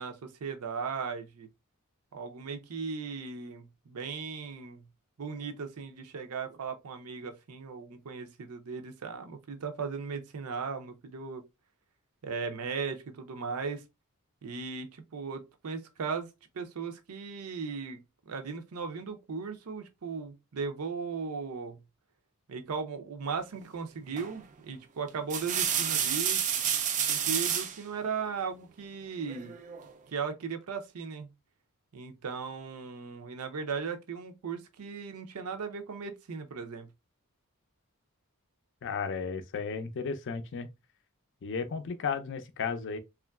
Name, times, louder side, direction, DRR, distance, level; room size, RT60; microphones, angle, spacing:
voice 1, 0.0-1.5 2.1-4.9 5.2-11.4 12.2-13.8 14.4-18.0 18.3-21.8 22.5-26.4 27.1-29.5 30.1-31.3 31.9-36.9, right 5 dB, 90° right, 0.5 m, -37 dB
sound 1, 24.2-24.5 25.1-27.8 29.3-29.9, right 8 dB, 35° right, 0.3 m, -30 dB
voice 2, 38.8-40.7 41.4-43.0, left 5 dB, 55° left, 0.4 m, -34 dB
3.0 x 2.4 x 2.2 m
head